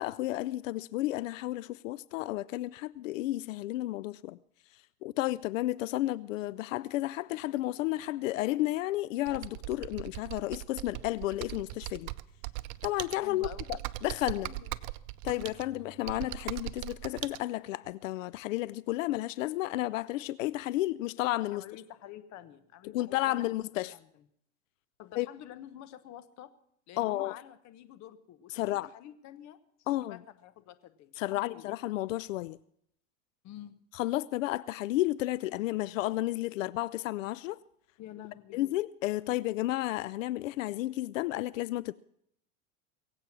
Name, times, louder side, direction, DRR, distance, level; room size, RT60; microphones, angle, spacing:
voice 1, 0.0-4.4 5.0-12.1 12.8-14.5 15.2-21.6 22.9-24.0 25.2-25.3 27.0-27.4 28.5-28.9 29.9-30.2 31.2-32.6 33.9-37.6 38.5-41.9, left 16 dB, 80° left, 0.5 m, -32 dB
Computer keyboard, 9.3-17.4, right 18 dB, 60° right, 0.7 m, -40 dB
voice 2, 13.2-13.7 14.4-14.7 15.2-15.6 21.5-23.4 23.9-24.2 25.0-26.5 26.9-31.7 33.4-33.7 38.0-38.7, left 11 dB, 45° left, 1.3 m, -48 dB
22.0 x 8.2 x 6.1 m
hypercardioid pair, 100°, 38 cm